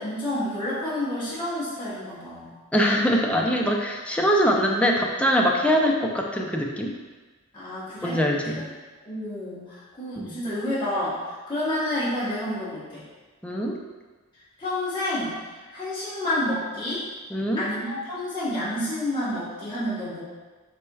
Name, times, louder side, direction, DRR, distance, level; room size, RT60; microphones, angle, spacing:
voice 1, 0.0-2.5 5.6-5.7 7.5-8.2 9.0-11.2 11.5-13.0 14.6-15.4 15.7-17.0 17.6-20.2, left 1 dB, 20° left, -11 dB, 1.1 m, -29 dB
voice 2, 2.7-6.9 8.0-8.6 10.2-10.3 13.4-13.8 17.3-17.6, equal, 5° left, -1 dB, 0.4 m, -23 dB
4.3 x 4.1 x 2.3 m, 1.3 s
head